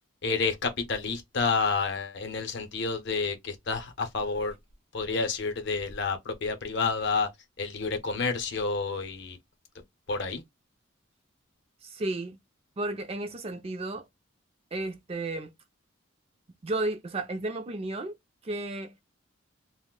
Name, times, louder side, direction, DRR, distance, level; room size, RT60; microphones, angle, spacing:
voice 1, 0.2-4.5 4.9-7.3 7.6-9.4 10.1-10.4, left 4 dB, 60° left, 0.7 m, -29 dB
voice 2, 11.8-12.4 12.8-14.1 14.7-15.5 16.6-18.1 18.4-18.9, right 2 dB, 30° right, 0.4 m, -33 dB
2.5 x 2.1 x 3.6 m
head